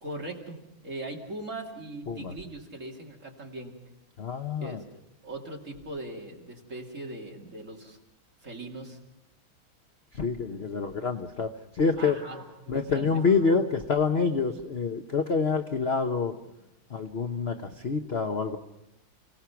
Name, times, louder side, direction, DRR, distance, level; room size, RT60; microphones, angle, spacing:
voice 1, 0.0-0.6 0.8-3.7 4.6-8.0 8.4-9.0 12.0-12.4 12.6-13.2, right 2 dB, 35° right, 0 dB, 2.9 m, -40 dB
voice 2, 4.2-4.8 10.1-12.2 12.7-16.3 16.9-18.6, left 5 dB, 50° left, 7 dB, 0.8 m, -27 dB
sound 1, 12.2-15.1 15.4-15.6 16.2-16.7, equal, 5° left, 5.5 m, -49 dB
29.5 x 17.5 x 5.9 m, 0.90 s
omnidirectional pair, 2.2 m